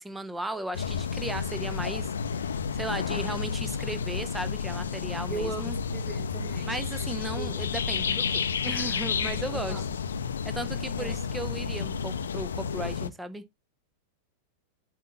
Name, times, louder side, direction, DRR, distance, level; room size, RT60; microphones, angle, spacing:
voice 1, 0.0-2.1 2.4-5.8 6.6-9.8 10.4-13.4, right 2 dB, 5° right, 0.7 m, -36 dB
sound 1, 0.7-13.1, left 6 dB, 70° left, 0.6 m, -31 dB
voice 2, 5.3-6.7 7.3-7.6 9.5-9.8 11.0-11.2, right 4 dB, 25° right, 2.0 m, -38 dB
7.2 x 2.9 x 5.8 m
figure-of-eight pair, 90°, 0 cm